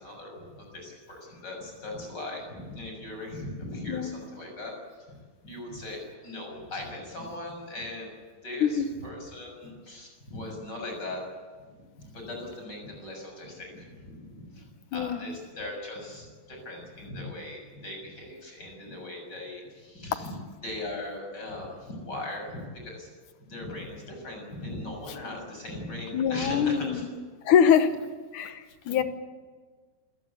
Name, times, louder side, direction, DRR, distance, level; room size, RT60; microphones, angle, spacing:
voice 1, 0.0-5.2 5.4-8.1 8.4-11.2 12.0-20.3 20.6-23.1 23.5-27.0 28.9-29.0, left 2 dB, 25° left, 1 dB, 7.3 m, -39 dB
voice 2, 14.9-15.2 26.1-27.1 27.4-27.9 28.3-29.0, left 8 dB, 65° left, 9 dB, 2.5 m, -23 dB
27.0 x 17.5 x 8.4 m, 1.5 s
omnidirectional pair, 4.2 m